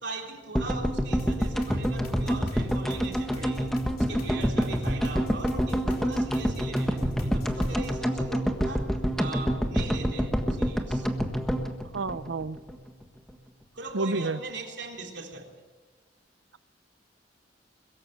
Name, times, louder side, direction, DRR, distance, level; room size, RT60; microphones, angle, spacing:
voice 1, 0.0-8.9 9.2-11.1 13.8-15.5, right 3 dB, 65° right, 2 dB, 3.6 m, -40 dB
sound 1, 0.5-12.8 13.0-13.1 13.3-13.4, equal, ahead, 1.6 m, -27 dB
sound 2, 1.2-8.0, left 1 dB, 55° left, 3.4 m, -42 dB
voice 2, 11.9-12.6 13.9-14.4, right 3 dB, 85° right, 15 dB, 0.8 m, -29 dB
22.5 x 15.0 x 9.2 m, 1.3 s
head